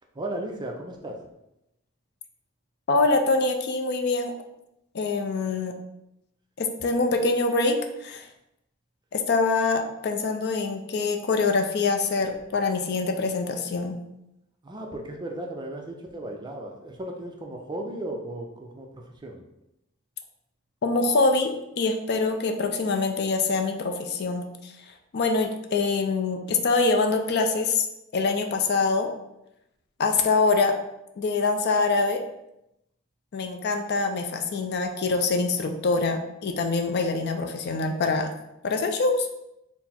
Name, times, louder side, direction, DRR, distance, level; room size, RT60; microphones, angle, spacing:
voice 1, 0.1-1.2 14.6-19.4, right 1 dB, 20° right, 2 dB, 0.4 m, -35 dB
voice 2, 2.9-4.3 4.9-5.7 6.6-8.3 9.1-14.0 20.8-24.7 25.1-27.9 28.1-29.1 30.0-30.8 31.2-32.2 33.3-38.3 38.6-39.4, left 3 dB, 50° left, 5 dB, 0.4 m, -24 dB
4.1 x 2.0 x 4.2 m, 0.86 s
head